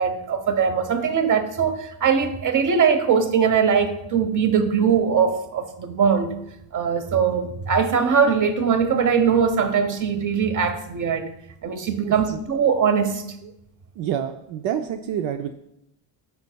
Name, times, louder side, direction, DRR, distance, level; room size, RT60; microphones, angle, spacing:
voice 1, 0.0-6.3 6.7-11.3 11.6-13.2, right 6 dB, 40° right, 8 dB, 1.0 m, -21 dB
voice 2, 12.0-12.4 13.4-13.5 14.0-15.5, right 9 dB, 70° right, 6 dB, 0.6 m, -28 dB
11.5 x 5.4 x 2.3 m, 0.79 s
supercardioid pair, 75°, 49 cm